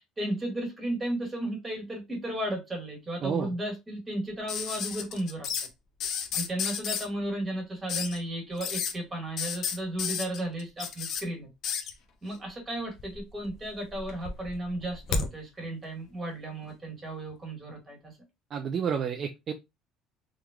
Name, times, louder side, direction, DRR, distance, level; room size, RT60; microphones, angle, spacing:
voice 1, 0.0-5.5 6.3-11.5 12.2-18.2, right 1 dB, 20° right, 1.7 m, -34 dB
sound 1, 4.5-5.7 6.0-7.1 7.9-8.2 8.6-8.9 9.4-11.2 11.6-11.9 13.0-13.5 13.9-15.3 16.6-16.7, left 6 dB, 55° left, 0.6 m, -32 dB
voice 2, 18.5-19.5, right 7 dB, 40° right, 0.4 m, -30 dB
3.6 x 3.0 x 2.2 m
cardioid pair, 140°, 0 cm